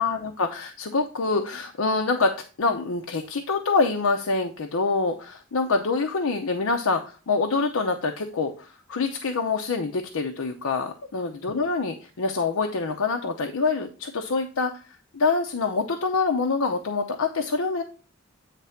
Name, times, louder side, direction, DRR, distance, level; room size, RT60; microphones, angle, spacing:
voice 1, 0.0-2.3 2.6-17.8, left 4 dB, 80° left, 4 dB, 0.7 m, -26 dB
8.8 x 3.3 x 5.7 m, 0.36 s
head